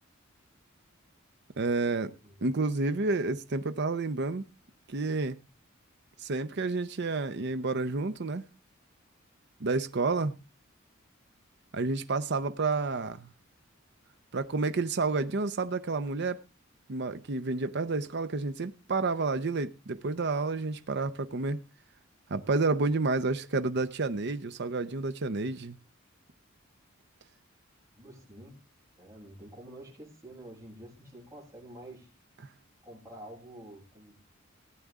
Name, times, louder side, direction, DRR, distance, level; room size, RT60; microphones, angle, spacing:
voice 1, 1.6-2.1 2.4-4.5 4.9-5.4 6.2-8.5 9.6-10.4 11.7-13.3 14.3-16.4 16.9-21.6 22.3-25.8, right 3 dB, 55° right, 0.7 m, -30 dB
voice 2, 27.9-28.6 29.0-32.1 32.8-34.3, right 1 dB, 15° right, 7.7 m, -48 dB
17.5 x 9.4 x 3.6 m
head